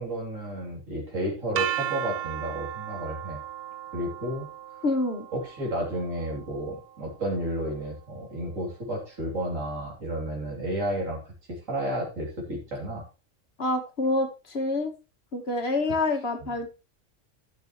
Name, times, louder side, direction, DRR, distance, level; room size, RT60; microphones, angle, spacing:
voice 1, 0.0-3.4 3.9-4.5 5.3-11.2 11.5-13.1, right 1 dB, 90° right, -2 dB, 3.5 m, -32 dB
sound 1, 1.6-7.5, right 11 dB, 60° right, 0.8 m, -36 dB
voice 2, 4.8-5.2 13.6-14.9 15.3-16.7, left 2 dB, 55° left, 5 dB, 1.7 m, -27 dB
13.0 x 6.4 x 3.1 m, 0.30 s
omnidirectional pair, 1.3 m